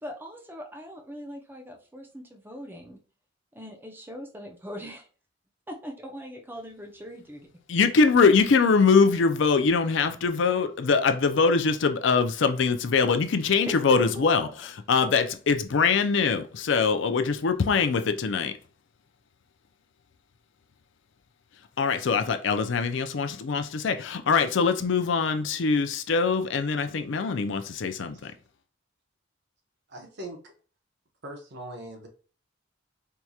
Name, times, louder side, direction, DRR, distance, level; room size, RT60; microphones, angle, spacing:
voice 1, 0.0-3.0 3.5-5.1 5.7-7.5 13.7-14.7, equal, 10° right, 0.6 m, -40 dB
voice 2, 7.7-18.5 21.8-28.3, left 5 dB, 65° left, 0.4 m, -23 dB
voice 3, 29.9-30.5 31.2-32.1, right 1 dB, 55° right, 1.1 m, -40 dB
4.5 x 2.8 x 2.3 m
head